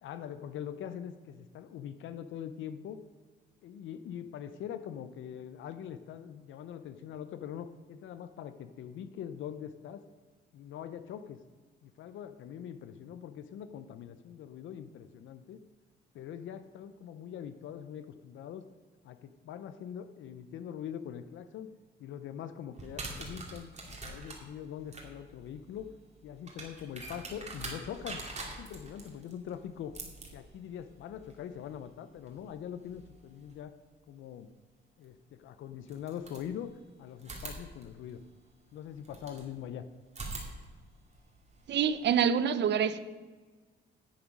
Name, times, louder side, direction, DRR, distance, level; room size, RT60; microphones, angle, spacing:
voice 1, 0.0-3.0 3.6-10.0 10.5-11.4 11.8-15.6 16.1-18.7 19.0-21.7 22.0-25.9 26.2-28.2 28.6-29.9 30.3-33.7 34.1-34.5 35.0-36.7 37.0-38.2 38.7-39.8, left 9 dB, 75° left, 11 dB, 0.6 m, -43 dB
sound 1, 22.7-33.5 35.0-35.1 35.8-36.8 37.2-39.5 40.1-42.1, right 2 dB, 35° right, 2.5 m, -46 dB
voice 2, 41.7-43.0, right 8 dB, 60° right, 14 dB, 0.7 m, -26 dB
11.0 x 7.2 x 5.3 m, 1.3 s
cardioid pair, 90°, 20 cm